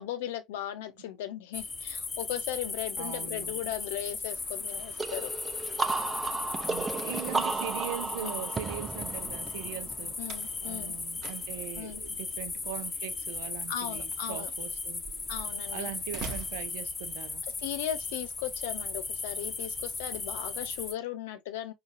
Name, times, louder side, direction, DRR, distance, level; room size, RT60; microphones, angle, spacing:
voice 1, 0.0-5.3 8.2-8.4 10.2-11.0 11.8-12.0 13.7-14.5 15.3-15.9 17.6-21.7, left 11 dB, 75° left, 0.6 m, -37 dB
sound 1, 1.5-20.9, left 4 dB, 30° left, 0.8 m, -37 dB
voice 2, 3.0-3.6 6.6-10.2 10.6-15.0 15.7-17.4, right 13 dB, 75° right, 0.4 m, -41 dB
sound 2, 5.0-10.5, right 3 dB, 25° right, 0.6 m, -34 dB
Slam, 6.7-17.5, right 4 dB, 60° right, 0.8 m, -49 dB
4.9 x 2.2 x 2.5 m
hypercardioid pair, 65°, 0 cm